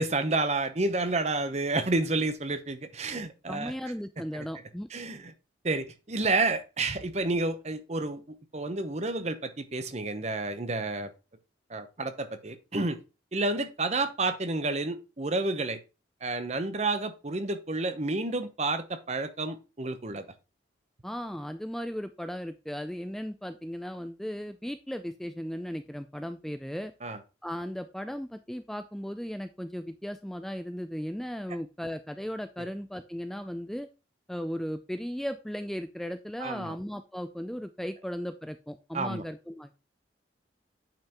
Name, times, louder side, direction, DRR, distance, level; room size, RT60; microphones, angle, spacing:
voice 1, 0.0-3.7 4.3-4.5 4.9-5.3 5.6-8.2 8.5-11.1 11.7-13.0 13.3-15.8 16.2-20.2 27.0-27.2 36.4-36.7 38.9-39.2, right 2 dB, 35° right, 10 dB, 0.9 m, -30 dB
voice 2, 3.5-5.2 21.0-26.9 27.4-33.9 34.3-39.7, equal, ahead, 9 dB, 0.3 m, -36 dB
9.0 x 5.6 x 3.0 m, 0.29 s
head